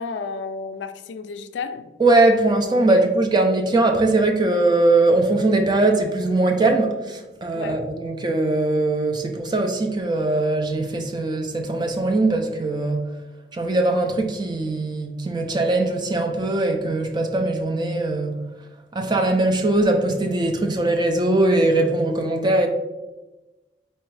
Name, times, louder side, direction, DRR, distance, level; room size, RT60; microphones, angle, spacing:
voice 1, 0.0-1.9 7.5-7.9, left 4 dB, 85° left, 0.3 m, -32 dB
voice 2, 2.0-13.0 13.5-18.4 18.9-22.7, right 2 dB, 25° right, 0.4 m, -20 dB
4.3 x 3.4 x 3.2 m
head